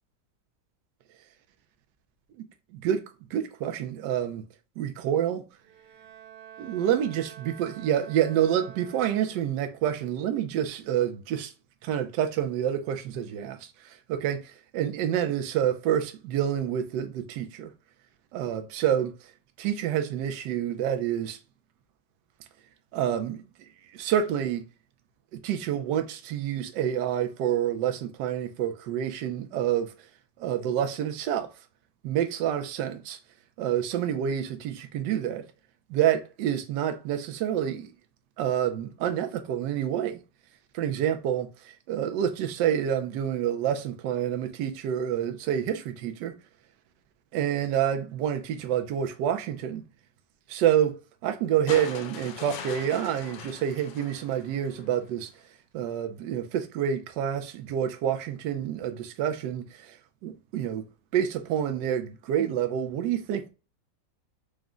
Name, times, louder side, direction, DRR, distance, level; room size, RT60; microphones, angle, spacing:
voice 1, 2.7-3.0 3.3-4.4 4.8-5.4 6.6-7.1 7.6-11.5 11.8-17.7 18.3-19.3 19.6-21.4 22.9-24.7 25.3-29.9 30.4-31.5 32.0-33.2 33.6-35.4 35.9-37.9 38.4-40.2 40.7-46.4 47.3-49.9 50.5-55.3 55.7-60.9 61.1-63.5, right 10 dB, 85° right, 1.2 m, -28 dB
Bowed string instrument, 5.6-9.7, right 9 dB, 60° right, 1.2 m, -48 dB
sound 1, 51.7-55.0 56.3-56.4, left 8 dB, 70° left, 0.8 m, -41 dB
4.9 x 2.1 x 3.5 m
omnidirectional pair, 1.9 m